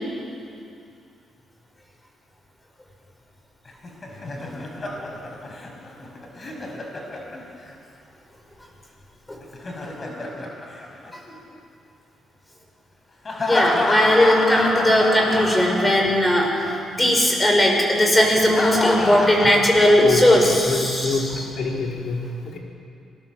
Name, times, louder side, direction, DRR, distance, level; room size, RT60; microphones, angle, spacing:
Laughter, 3.7-7.7 9.4-11.5 13.2-16.3 16.6-16.7 18.2-20.3, left 2 dB, 35° left, 5.0 m, -28 dB
voice 1, 13.5-21.4, left 1 dB, 15° left, 1 dB, 6.6 m, -18 dB
voice 2, 20.0-20.4 20.7-22.2 22.4-22.6, left 4 dB, 70° left, -1 dB, 4.8 m, -25 dB
27.0 x 19.5 x 7.7 m, 2.5 s
cardioid pair, 90°, 0 cm